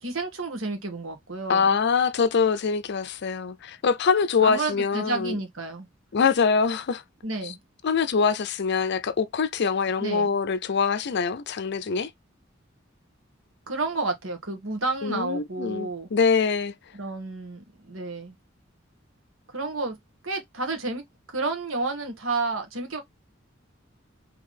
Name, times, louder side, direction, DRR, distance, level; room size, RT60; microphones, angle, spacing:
voice 1, 0.0-1.7 4.4-5.9 7.2-7.6 10.0-10.4 13.7-16.1 16.9-18.3 19.5-20.0 20.2-23.0, right 3 dB, 80° right, 1.7 m, -31 dB
voice 2, 1.5-5.4 6.1-7.0 7.4-7.5 7.8-12.1 15.0-16.7, left 5 dB, 60° left, 0.5 m, -24 dB
3.9 x 3.4 x 3.3 m
head